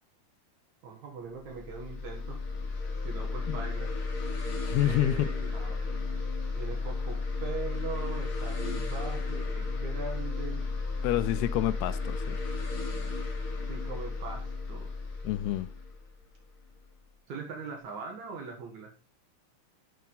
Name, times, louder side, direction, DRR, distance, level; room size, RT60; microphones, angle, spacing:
voice 1, 0.8-2.4 3.0-3.9 4.7-6.0 6.6-10.6 13.7-14.9 17.3-18.9, right 4 dB, 60° right, 2.3 m, -41 dB
sound 1, 1.4-16.8, left 3 dB, 45° left, 2.1 m, -33 dB
voice 2, 4.7-5.3 11.0-12.4 15.2-15.7, left 13 dB, 85° left, 2.7 m, -28 dB
7.3 x 6.9 x 4.0 m
omnidirectional pair, 4.6 m